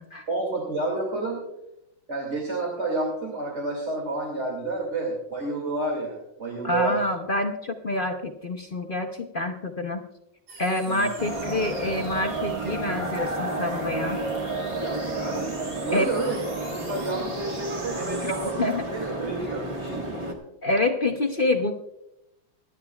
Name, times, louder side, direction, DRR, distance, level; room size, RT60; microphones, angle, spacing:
voice 1, 0.3-1.4 2.1-7.1 10.8-11.1 15.1-16.4 16.7-20.3, right 2 dB, 40° right, 0 dB, 2.6 m, -30 dB
voice 2, 6.6-10.0 10.6-14.2 15.9-16.1 18.2-18.3 18.6-18.8 20.6-21.7, left 2 dB, 40° left, 4 dB, 0.7 m, -27 dB
sound 1, 10.5-18.5, right 3 dB, 60° right, 2.7 m, -44 dB
sound 2, 11.2-20.3, right 2 dB, 20° right, 1.4 m, -31 dB
25.0 x 11.0 x 2.3 m, 0.86 s
omnidirectional pair, 2.0 m